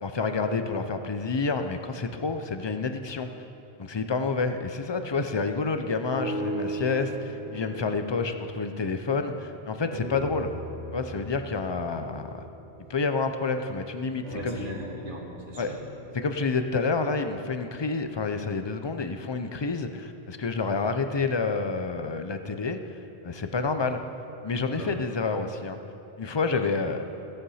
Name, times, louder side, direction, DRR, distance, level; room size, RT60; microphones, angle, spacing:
voice 1, 0.0-3.3 3.8-10.5 10.9-12.4 12.9-14.6 15.6-15.7 16.1-23.0 23.2-24.0 24.4-25.8 26.2-27.0, left 4 dB, 35° left, 8 dB, 0.5 m, -29 dB
sound 1, 6.1-9.5 9.9-13.6 14.2-18.4 19.1-19.2, right 1 dB, 90° right, 2.4 m, -39 dB
voice 2, 14.3-15.8 24.7-25.0 26.5-26.7, right 1 dB, 50° right, -1 dB, 1.9 m, -39 dB
16.0 x 8.4 x 5.6 m, 2.8 s
omnidirectional pair, 1.2 m